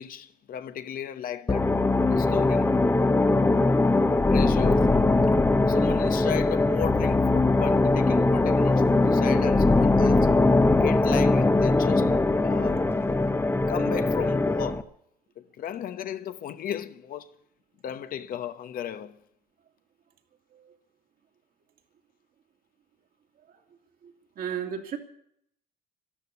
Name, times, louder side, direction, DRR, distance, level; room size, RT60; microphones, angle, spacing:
voice 1, 0.0-1.7 2.1-2.7 4.3-4.9 5.7-10.3 10.8-12.1 12.4-12.8 13.7-14.8 15.4-17.3 17.8-19.2, left 9 dB, 60° left, 1.0 m, -35 dB
sound 1, 1.5-14.8, left 2 dB, 15° left, 0.9 m, -21 dB
voice 2, 24.0-25.0, right 8 dB, 60° right, 2.5 m, -35 dB
13.0 x 12.5 x 8.3 m
cardioid pair, 110°, 17 cm